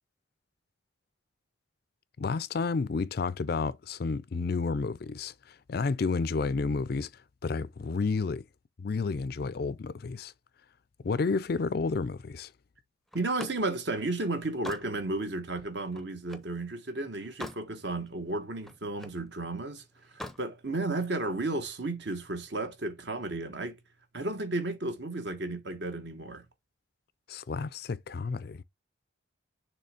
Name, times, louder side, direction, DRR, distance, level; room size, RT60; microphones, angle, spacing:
voice 1, 2.2-7.1 7.4-8.4 8.8-10.3 11.0-12.5 27.3-28.6, left 4 dB, 50° left, 0.4 m, -31 dB
Slam, 13.1-16.6 17.0-17.7 18.1-19.2 20.0-20.5, left 1 dB, ahead, 0.6 m, -44 dB
voice 2, 13.1-19.8 20.1-23.8 24.1-26.4, right 2 dB, 60° right, 1.3 m, -33 dB
6.7 x 3.1 x 4.9 m
head